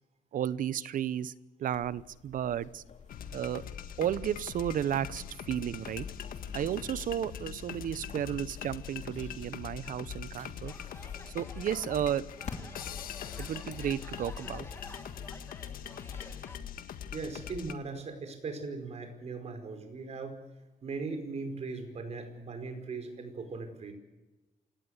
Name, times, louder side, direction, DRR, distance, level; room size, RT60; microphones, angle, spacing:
voice 1, 0.3-1.3 1.6-2.8 3.3-3.6 4.0-6.1 6.5-10.7 11.3-12.2 13.4-14.7, right 10 dB, 70° right, 18 dB, 0.9 m, -33 dB
sound 1, 1.7-16.2, left 6 dB, 55° left, 2.8 m, -51 dB
sound 2, 3.1-17.7, left 8 dB, 85° left, 1.7 m, -42 dB
sound 3, 10.7-16.6, left 2 dB, 15° left, 2.0 m, -51 dB
voice 2, 17.1-20.4 20.8-23.9, right 4 dB, 50° right, 7 dB, 5.1 m, -39 dB
28.0 x 18.0 x 8.1 m, 1.1 s
cardioid pair, 130°, 14 cm